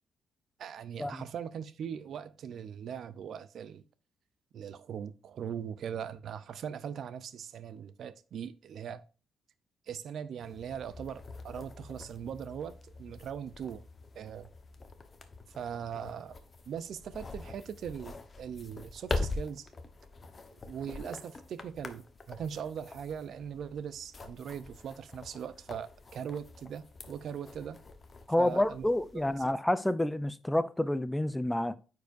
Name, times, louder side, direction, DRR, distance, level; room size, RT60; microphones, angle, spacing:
voice 1, 0.6-3.8 4.5-9.0 9.9-13.8 14.1-14.5 15.5-16.4 16.7-19.7 20.7-27.8 28.4-28.9 29.1-29.5, right 8 dB, 65° right, 0.5 m, -40 dB
sound 1, 10.4-29.5, left 3 dB, 35° left, 0.9 m, -44 dB
voice 2, 28.3-31.8, left 1 dB, 10° left, 0.4 m, -29 dB
9.2 x 4.7 x 2.5 m
cardioid pair, 90°, 0 cm